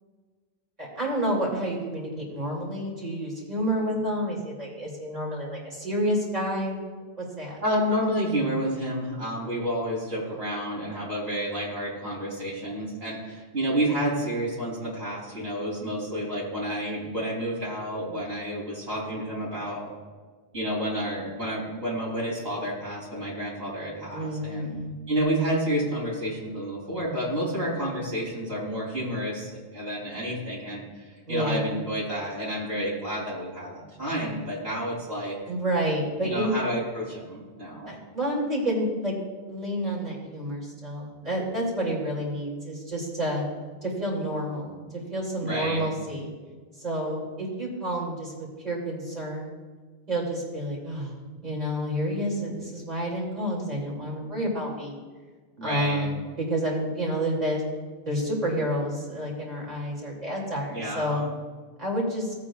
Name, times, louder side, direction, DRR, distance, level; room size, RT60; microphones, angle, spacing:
voice 1, 0.8-6.8 7.2-7.6 24.1-24.9 31.3-31.6 35.5-36.5 37.9-39.2 39.5-43.4 43.8-44.8 45.1-46.3 46.8-49.6 50.1-51.1 51.4-54.9 55.6-57.6 58.0-61.2 61.8-62.3, equal, 40° right, -3 dB, 3.1 m, -29 dB
voice 2, 7.6-19.9 20.5-24.7 25.1-35.3 36.2-37.9 45.4-45.9 55.6-56.1 60.7-61.3, equal, 80° right, -8 dB, 4.0 m, -30 dB
17.5 x 8.5 x 2.5 m, 1.4 s
omnidirectional pair, 1.1 m